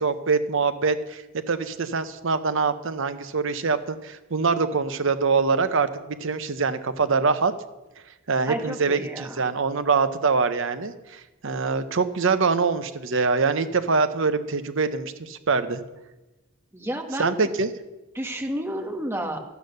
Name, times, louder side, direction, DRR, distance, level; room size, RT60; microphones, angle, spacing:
voice 1, 0.0-7.5 8.3-15.8 17.2-17.7, right 4 dB, 65° right, 10 dB, 0.8 m, -24 dB
voice 2, 8.5-9.4 16.7-17.3 18.1-19.4, right 1 dB, 10° right, 2 dB, 1.5 m, -31 dB
12.5 x 8.2 x 6.6 m, 1.1 s
head